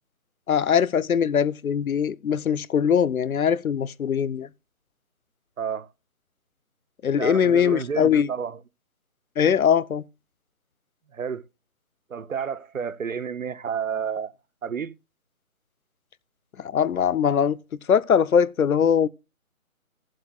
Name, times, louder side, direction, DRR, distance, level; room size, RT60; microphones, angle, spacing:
voice 1, 0.5-4.5 7.0-8.3 9.4-10.0 16.6-17.6 17.9-19.1, left 7 dB, 80° left, 0.7 m, -21 dB
voice 2, 5.6-5.9 7.2-8.6 11.1-11.4 12.1-14.3 14.6-14.9, right 7 dB, 70° right, 0.7 m, -30 dB
20.0 x 7.6 x 2.3 m
figure-of-eight pair, 170°, 42 cm